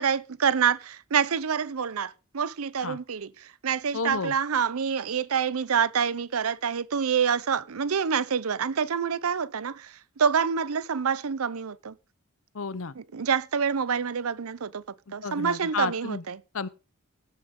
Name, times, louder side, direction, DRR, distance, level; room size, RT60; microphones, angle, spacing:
voice 1, 0.0-11.9 13.0-14.8 15.1-16.4, right 6 dB, 85° right, 0.6 m, -27 dB
voice 2, 3.9-4.3 12.5-12.9 15.2-16.2 16.5-16.7, left 5 dB, 70° left, 0.8 m, -31 dB
16.5 x 8.4 x 3.8 m
head